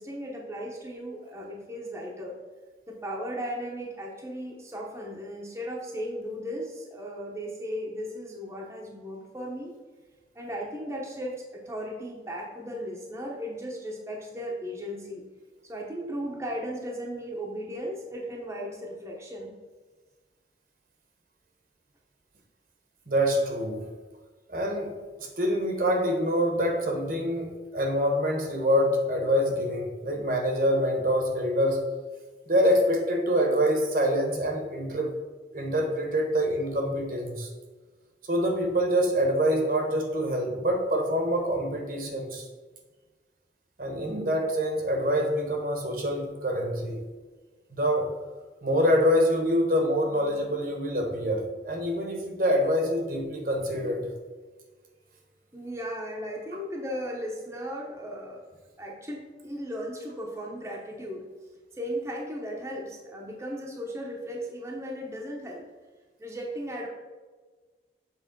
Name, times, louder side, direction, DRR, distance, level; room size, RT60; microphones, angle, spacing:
voice 1, 0.0-2.4 2.9-9.7 10.3-15.2 15.6-19.5 55.5-58.4 58.8-61.3 61.7-65.6 66.2-66.9, equal, 15° right, -2 dB, 0.9 m, -36 dB
voice 2, 23.1-23.9 24.5-31.8 32.5-35.1 35.5-37.5 38.3-42.4 43.8-47.0 47.7-48.1 48.6-54.1, equal, 50° right, 3 dB, 1.1 m, -26 dB
7.4 x 3.3 x 5.2 m, 1.3 s
head